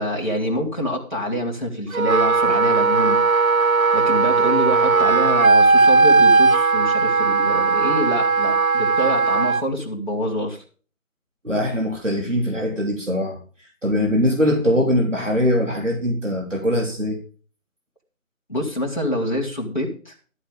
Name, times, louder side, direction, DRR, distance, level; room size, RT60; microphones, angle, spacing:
voice 1, 0.0-3.2 3.9-10.6 18.5-20.2, equal, 35° left, 3.7 m, -26 dB
Wind instrument woodwind instrument, 1.9-9.6, right 4 dB, 75° right, 0.7 m, -17 dB
voice 2, 11.4-17.2, equal, 60° right, 3.4 m, -22 dB
13.5 x 8.6 x 5.3 m
figure-of-eight pair, 180°, 42 cm